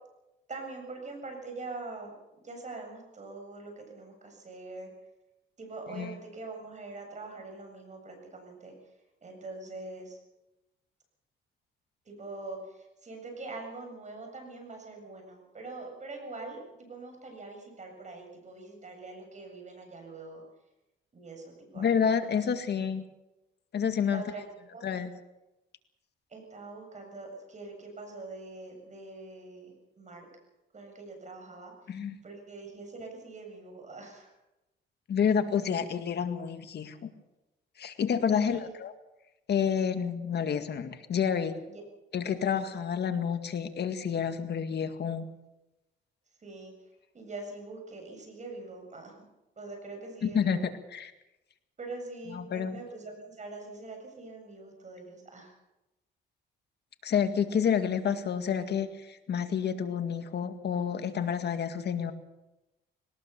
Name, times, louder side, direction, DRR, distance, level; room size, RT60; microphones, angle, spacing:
voice 1, 0.5-4.9 5.6-8.9 9.2-10.2 12.0-20.4 21.1-22.5 24.1-24.4 24.7-24.9 26.3-30.3 30.7-34.3 38.3-38.7 41.7-41.8 42.4-42.5 46.4-46.7 47.1-49.1 49.6-50.7 51.8-55.5, right 3 dB, 35° right, 3 dB, 7.6 m, -44 dB
voice 2, 21.8-23.0 23.7-24.2 24.8-25.1 31.9-32.2 35.1-37.1 37.8-38.9 39.5-41.6 42.1-45.3 50.2-51.1 52.3-52.8 57.0-62.1, left 7 dB, 55° left, 8 dB, 2.0 m, -29 dB
21.0 x 19.0 x 7.0 m, 0.98 s
cardioid pair, 90°, 20 cm